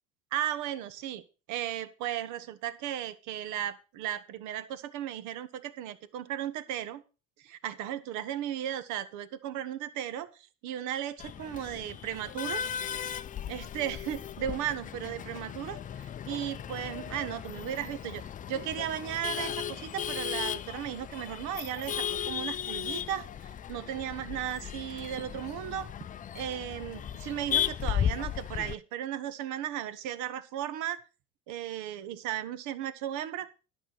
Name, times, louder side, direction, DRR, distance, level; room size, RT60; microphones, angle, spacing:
voice 1, 0.3-1.2 1.5-7.0 7.4-10.3 10.6-12.7 13.5-18.2 18.5-23.3 23.7-25.9 26.3-31.0 31.5-33.5, right 11 dB, 65° right, 14 dB, 1.3 m, -35 dB
Male speech man speaking / Laughter / Chatter, 11.2-28.7, left 9 dB, 25° left, 0.5 m, -36 dB
11.0 x 6.1 x 6.6 m, 0.33 s
cardioid pair, 120°, 32 cm